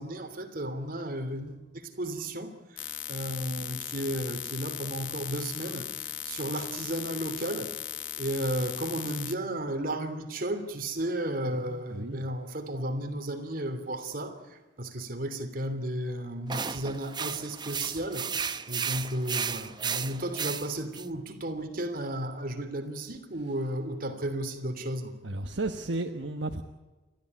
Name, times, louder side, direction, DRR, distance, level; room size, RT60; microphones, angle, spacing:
voice 1, 0.0-7.7 8.2-18.3 18.7-25.1, right 1 dB, 50° right, 6 dB, 3.1 m, -34 dB
sound 1, 2.8-9.3, left 12 dB, 85° left, 1.1 m, -38 dB
voice 2, 11.6-12.2 25.2-26.6, right 2 dB, 75° right, 5 dB, 1.3 m, -33 dB
sound 2, 16.5-21.1, right 6 dB, 25° right, 0.8 m, -34 dB
29.0 x 14.0 x 9.6 m, 1.2 s
head